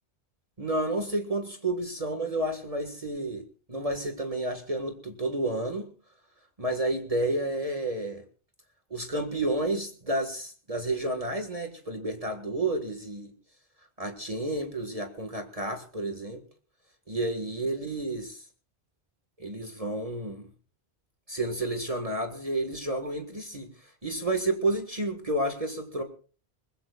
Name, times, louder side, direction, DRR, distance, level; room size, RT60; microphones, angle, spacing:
voice 1, 0.6-5.9 6.6-8.2 8.9-13.3 14.0-16.4 17.1-18.4 19.4-20.5 21.3-26.0, right 2 dB, 35° right, 5 dB, 1.8 m, -31 dB
22.5 x 21.0 x 2.4 m, 0.38 s
omnidirectional pair, 1.1 m